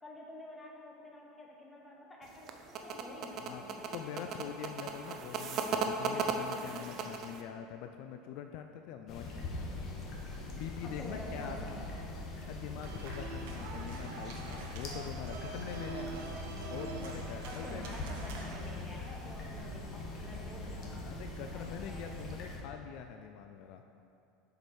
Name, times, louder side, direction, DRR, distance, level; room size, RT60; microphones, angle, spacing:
voice 1, 0.0-4.4 10.8-12.1 17.4-21.1 21.5-22.4, left 1 dB, 15° left, -1 dB, 1.1 m, -48 dB
sound 1, 2.2-7.4, right 5 dB, 45° right, 0.5 m, -36 dB
voice 2, 3.9-9.7 10.5-11.8 12.4-16.1 16.7-18.2 21.0-23.8, left 9 dB, 60° left, 6 dB, 0.3 m, -44 dB
sound 2, 9.1-22.6, left 2 dB, 45° left, 1.3 m, -42 dB
sound 3, 12.8-18.7, right 3 dB, 75° right, 0.9 m, -45 dB
6.9 x 4.9 x 4.6 m, 2.5 s
supercardioid pair, 130°, 0 cm